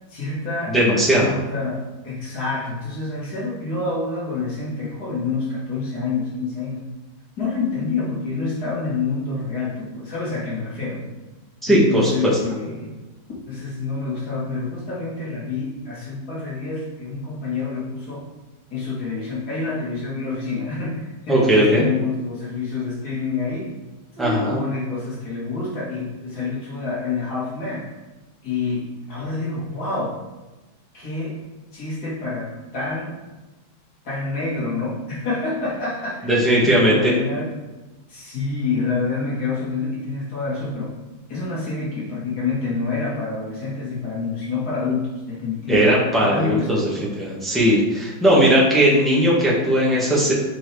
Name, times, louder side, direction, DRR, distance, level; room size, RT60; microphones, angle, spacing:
voice 1, 0.1-6.9 7.4-11.1 11.7-13.0 13.5-18.3 18.7-23.7 24.2-27.9 28.4-30.2 30.9-31.4 31.7-33.2 34.0-36.3 36.8-37.5 38.1-41.0 41.3-45.9 46.3-47.1, left 4 dB, 55° left, -6 dB, 2.4 m, -27 dB
voice 2, 0.7-1.3 11.6-12.3 21.3-21.8 24.2-24.6 36.2-37.1 45.7-46.9 47.2-50.3, equal, ahead, -6 dB, 1.6 m, -18 dB
7.6 x 4.5 x 3.5 m, 1.1 s
omnidirectional pair, 2.1 m